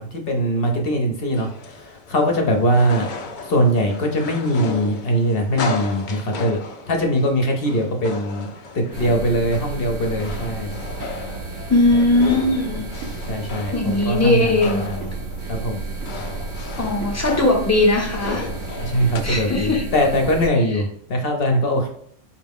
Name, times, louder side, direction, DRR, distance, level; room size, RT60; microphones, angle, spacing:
voice 1, 0.0-3.1 3.4-6.6 6.9-8.5 8.7-10.7 11.9-12.0 13.3-15.1 15.4-15.8 18.8-21.9, equal, 50° left, 2 dB, 0.9 m, -21 dB
sound 1, 1.3-19.2, left 4 dB, 65° left, 0.4 m, -35 dB
sound 2, 8.9-20.5, right 3 dB, 75° right, 1.0 m, -32 dB
voice 2, 11.7-12.8 13.7-14.9 16.8-18.5 19.2-19.9, left 2 dB, 15° left, 0 dB, 0.6 m, -19 dB
4.6 x 2.4 x 3.5 m, 0.65 s
omnidirectional pair, 1.4 m